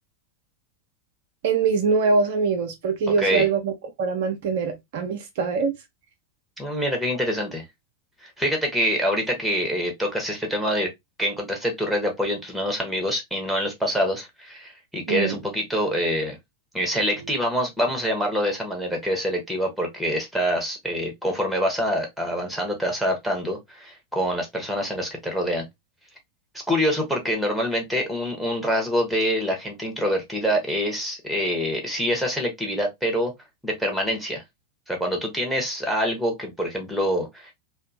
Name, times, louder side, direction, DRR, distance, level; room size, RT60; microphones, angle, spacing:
voice 1, 1.4-3.7 4.0-5.7 15.1-15.4, right 5 dB, 50° right, 0.5 m, -23 dB
voice 2, 6.6-7.6 8.2-10.9 11.2-16.4 16.7-25.6 26.7-33.3 33.6-34.4 34.9-37.5, equal, ahead, 0.8 m, -25 dB
2.5 x 2.2 x 2.5 m
figure-of-eight pair, 90°, 0 cm